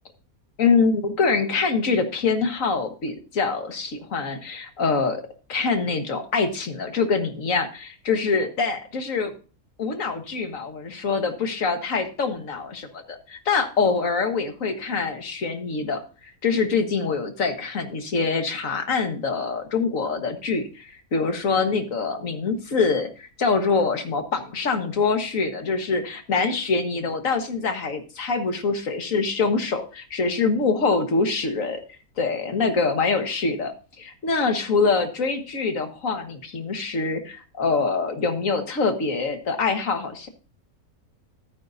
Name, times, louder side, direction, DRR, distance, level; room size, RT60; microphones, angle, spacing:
voice 1, 0.6-5.2 5.5-9.3 9.8-31.8 32.2-40.3, left 4 dB, 60° left, 7 dB, 1.8 m, -24 dB
13.5 x 9.2 x 2.6 m, 0.35 s
omnidirectional pair, 1.6 m